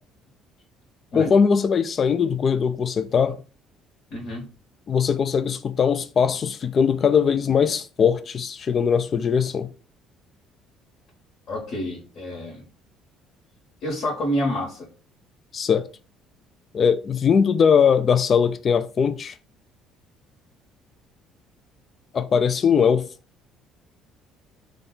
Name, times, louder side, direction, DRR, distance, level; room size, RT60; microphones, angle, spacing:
voice 1, 1.1-3.4 4.9-9.7 15.5-15.8 16.7-19.3 22.1-23.1, left 6 dB, 40° left, 0.3 m, -20 dB
voice 2, 4.1-4.4 11.5-12.6 13.8-14.9, equal, 55° left, 1.5 m, -28 dB
3.6 x 2.3 x 3.8 m
cardioid pair, 105°, 0 cm